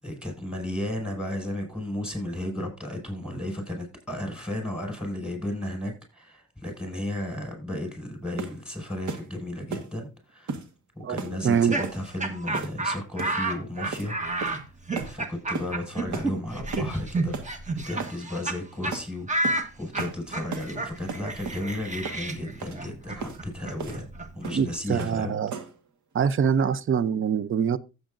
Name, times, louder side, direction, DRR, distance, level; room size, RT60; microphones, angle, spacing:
voice 1, 0.0-10.6 11.0-14.2 15.0-17.3 17.9-24.1 24.3-25.4, left 1 dB, 5° right, 5.8 m, -34 dB
sound 1, 8.4-8.6 9.1-9.3 9.7-9.9 10.5-10.7 11.2-11.4 11.8-12.0 12.5-12.8 13.2-13.4 13.9-14.1 14.4-14.7 15.0-15.1 15.5-15.7 16.1-16.3 16.7-16.9 17.3-17.5 18.0-18.2 18.9-19.1 19.4-19.6 20.0-20.2 20.5-20.7 21.1-21.6 22.0-22.2 22.6-22.8 23.2-23.4 23.8-24.0 24.4-24.7 25.0-25.2 25.5-25.8, right 4 dB, 70° right, 1.6 m, -35 dB
voice 2, 11.0-11.8 24.5-25.5 26.1-27.8, right 7 dB, 45° right, 0.7 m, -24 dB
Laughter, 11.4-18.6 18.8-19.0 19.3-25.0, right 2 dB, 25° right, 1.4 m, -31 dB
15.0 x 8.0 x 2.6 m
cardioid pair, 90°, 30 cm